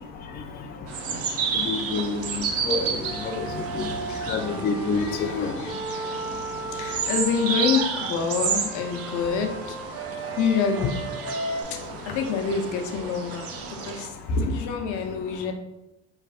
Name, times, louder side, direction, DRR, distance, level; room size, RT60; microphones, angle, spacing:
sound 1, 0.9-14.1, right 6 dB, 45° right, 0.6 m, -32 dB
voice 1, 1.6-2.9 3.2-3.4 3.8-3.9 4.3-5.5, left 3 dB, 30° left, 4 dB, 0.4 m, -27 dB
Wind instrument woodwind instrument, 3.0-7.8 8.5-11.6, right 2 dB, 5° right, 1.3 m, -35 dB
voice 2, 4.9-6.0 6.7-9.8 10.1-11.0 12.0-13.5 13.8-15.5, left 5 dB, 65° left, 5 dB, 0.7 m, -27 dB
5.4 x 3.2 x 2.4 m, 0.93 s
supercardioid pair, 110°, 32 cm